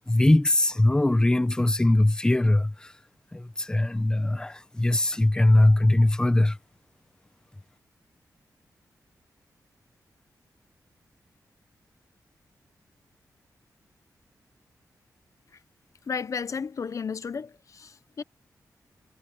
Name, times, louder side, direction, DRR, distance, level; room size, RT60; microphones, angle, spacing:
voice 1, 0.1-2.9 3.3-6.6, left 1 dB, 10° left, 0.7 m, -21 dB
voice 2, 16.1-18.2, left 6 dB, 55° left, 0.7 m, -33 dB
wide cardioid pair, 110°, 7 cm